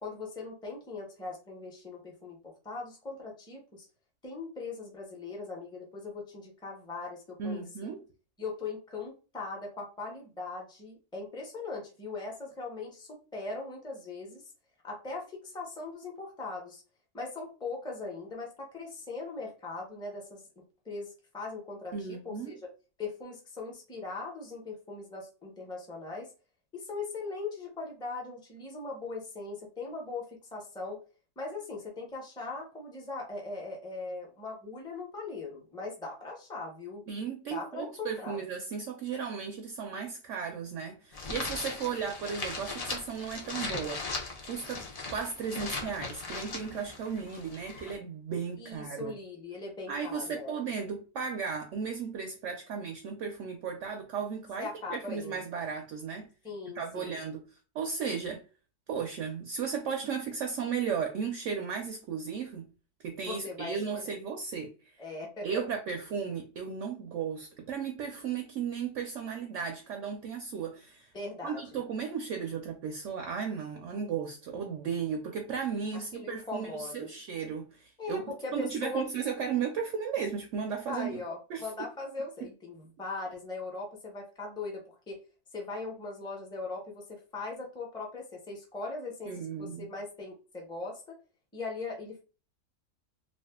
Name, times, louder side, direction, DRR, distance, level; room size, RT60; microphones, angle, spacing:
voice 1, 0.0-3.9 4.2-7.9 8.4-14.4 14.8-16.8 17.1-20.4 20.8-22.7 23.0-26.3 26.7-31.0 31.4-37.0 37.5-38.4 48.6-50.5 54.6-55.4 56.4-57.2 63.3-64.1 65.0-65.6 71.1-71.8 75.9-77.1 78.0-79.1 80.9-85.2 85.5-89.3 89.6-91.2 91.5-92.2, left 3 dB, 5° left, 0.6 m, -40 dB
voice 2, 7.4-8.0 21.9-22.6 37.1-44.1 44.5-44.8 45.1-49.2 49.9-56.3 56.7-57.4 57.7-58.4 58.9-62.7 63.0-64.7 65.4-71.1 71.4-81.2 81.5-81.9 89.2-89.9, right 6 dB, 65° right, 0.8 m, -35 dB
sound 1, 41.1-47.9, left 3 dB, 80° left, 0.3 m, -39 dB
2.5 x 2.4 x 3.5 m
omnidirectional pair, 1.6 m